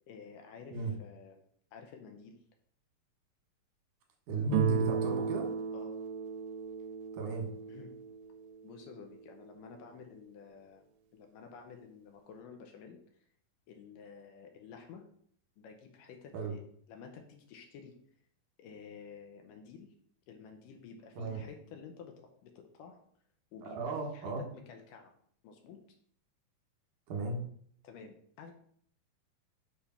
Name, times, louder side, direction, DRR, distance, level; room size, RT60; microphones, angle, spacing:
voice 1, 0.1-1.4 1.7-2.4 5.7-6.0 7.7-7.9 8.6-10.9 11.1-13.0 13.7-15.0 15.6-16.6 16.9-18.0 18.6-19.9 20.3-23.0 23.5-25.1 25.4-25.8 27.8-28.5, left 6 dB, 75° left, 4 dB, 2.3 m, -51 dB
voice 2, 4.3-5.5 7.1-7.5 16.3-16.5 21.2-21.5 23.6-24.4 27.1-27.4, right 2 dB, 65° right, 2 dB, 2.6 m, -35 dB
Guitar, 4.5-9.3, right 8 dB, 90° right, 2.4 m, -35 dB
7.1 x 3.4 x 5.6 m, 0.63 s
omnidirectional pair, 4.0 m